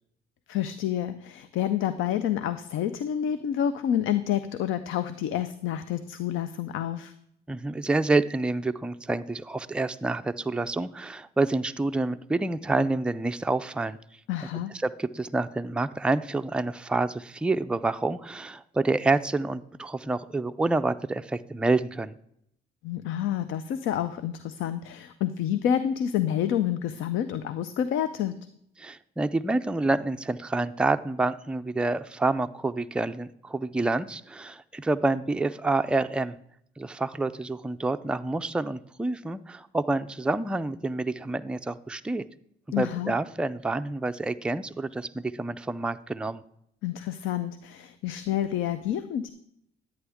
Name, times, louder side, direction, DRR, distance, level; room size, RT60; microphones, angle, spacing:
voice 1, 0.5-7.1 14.3-14.7 22.8-28.4 42.7-43.1 46.8-49.3, left 10 dB, 80° left, 13 dB, 0.5 m, -28 dB
voice 2, 7.5-14.0 14.8-22.2 28.8-36.4 36.8-42.2 42.8-46.4, right 2 dB, 5° right, 9 dB, 0.3 m, -28 dB
11.0 x 8.9 x 3.5 m, 0.73 s
cardioid pair, 90°, 20 cm